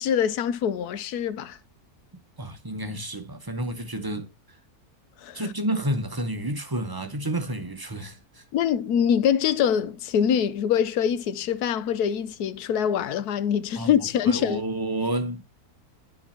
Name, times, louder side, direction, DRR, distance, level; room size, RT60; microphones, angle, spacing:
voice 1, 0.0-1.6 5.2-5.4 8.5-14.6, left 8 dB, 85° left, 1.2 m, -24 dB
voice 2, 2.4-4.6 5.3-8.4 13.8-15.4, right 1 dB, 20° right, 0.6 m, -30 dB
9.9 x 4.2 x 4.2 m
omnidirectional pair, 1.6 m